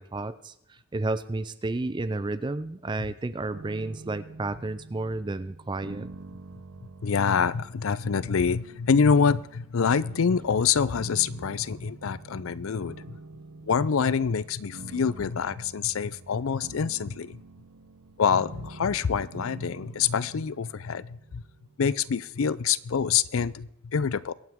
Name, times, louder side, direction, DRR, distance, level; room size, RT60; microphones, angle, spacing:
voice 1, 0.0-6.1, right 2 dB, 20° right, 14 dB, 0.4 m, -32 dB
sound 1, 3.5-22.5, right 3 dB, 90° right, 0.9 m, -47 dB
voice 2, 7.0-13.2 13.7-17.4 18.2-21.4 21.8-24.3, left 6 dB, 70° left, 19 dB, 0.5 m, -26 dB
23.5 x 9.1 x 3.6 m, 0.79 s
head